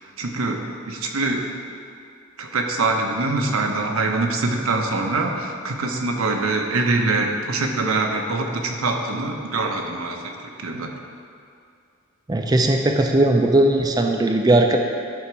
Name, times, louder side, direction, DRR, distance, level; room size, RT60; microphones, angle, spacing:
voice 1, 0.2-1.4 2.4-10.9, right 3 dB, 90° right, 2 dB, 0.8 m, -24 dB
voice 2, 12.3-14.8, right 1 dB, 20° right, 3 dB, 0.4 m, -18 dB
11.0 x 3.9 x 4.6 m, 2.3 s
head